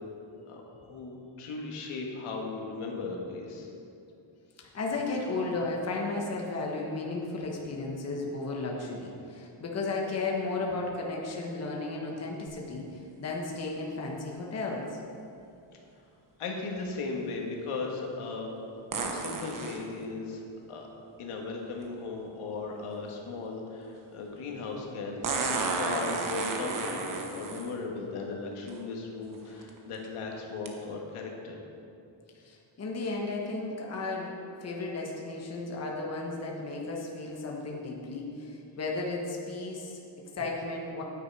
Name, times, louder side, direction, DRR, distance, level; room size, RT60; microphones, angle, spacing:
voice 1, 0.5-3.7 16.4-18.5 19.1-20.4 20.7-20.9 21.2-31.6, left 3 dB, 85° left, 0 dB, 1.6 m, -37 dB
voice 2, 4.6-15.0 32.4-34.4 34.6-41.0, left 3 dB, 30° left, -1 dB, 1.2 m, -34 dB
sound 1, 18.9-19.8 21.8-21.9 25.2-27.7 28.7-28.8 29.4-29.7 30.7-30.8, right 4 dB, 40° right, 1.0 m, -32 dB
9.5 x 8.8 x 4.7 m, 2.6 s
cardioid pair, 160°, 49 cm